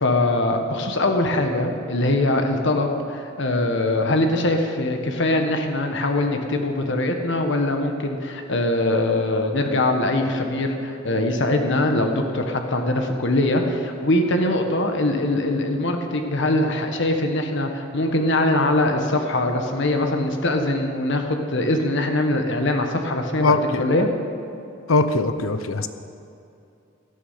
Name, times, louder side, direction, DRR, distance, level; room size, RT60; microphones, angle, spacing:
voice 1, 0.0-24.1, left 1 dB, 65° left, 4 dB, 1.5 m, -22 dB
voice 2, 23.4-23.9 24.9-25.9, left 3 dB, 90° left, 10 dB, 0.8 m, -21 dB
18.0 x 12.5 x 5.8 m, 2.6 s
head